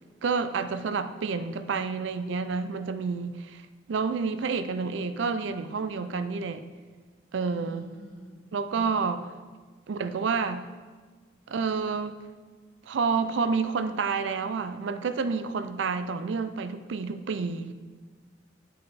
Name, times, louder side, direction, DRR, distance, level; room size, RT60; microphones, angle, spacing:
voice 1, 0.2-3.6 3.9-6.6 7.3-7.9 8.5-9.3 9.9-10.7 11.5-12.2 12.9-17.7, right 5 dB, 70° right, 11 dB, 0.4 m, -29 dB
voice 2, 7.5-8.4 8.7-9.0, right 1 dB, 25° right, -5 dB, 1.9 m, -47 dB
7.7 x 5.3 x 4.1 m, 1.4 s
head